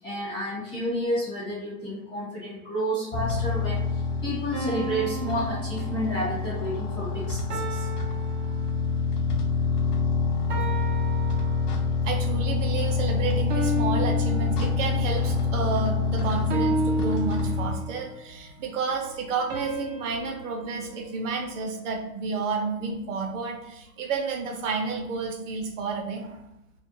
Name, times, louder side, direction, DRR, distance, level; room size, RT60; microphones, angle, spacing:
voice 1, 0.0-7.9, equal, 10° left, -8 dB, 0.4 m, -31 dB
sound 1, 3.1-17.7, left 4 dB, 90° left, 0.6 m, -26 dB
sound 2, 4.5-6.4 7.5-9.2 10.5-12.1 13.5-15.2 16.5-18.1 19.5-21.8, right 1 dB, 90° right, 0.8 m, -33 dB
voice 2, 12.0-26.4, right 4 dB, 55° right, 2 dB, 0.7 m, -31 dB
2.5 x 2.0 x 2.9 m, 0.85 s
hypercardioid pair, 120°, 45 cm